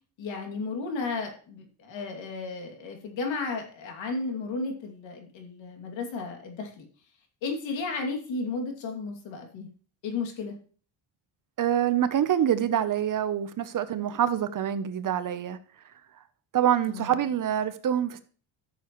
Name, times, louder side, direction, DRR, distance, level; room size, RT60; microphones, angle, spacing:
voice 1, 0.2-6.8 7.4-9.7 10.0-10.6 16.9-17.3, left 4 dB, 70° left, 3 dB, 2.7 m, -34 dB
voice 2, 11.6-15.6 16.5-18.2, right 10 dB, 45° right, 12 dB, 0.8 m, -26 dB
13.0 x 7.0 x 3.1 m, 0.41 s
cardioid pair, 115°, 46 cm